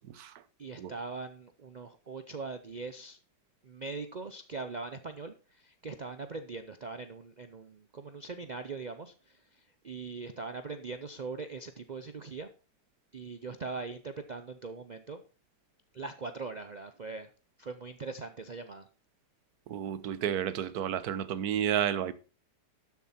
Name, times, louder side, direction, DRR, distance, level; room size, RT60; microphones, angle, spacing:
voice 1, 0.6-3.2 3.6-12.5 13.1-15.2 15.9-17.3 17.6-18.9, right 4 dB, 90° right, 0.4 m, -41 dB
voice 2, 19.7-22.1, right 9 dB, 65° right, 1.3 m, -31 dB
12.5 x 7.1 x 4.3 m
omnidirectional pair, 1.8 m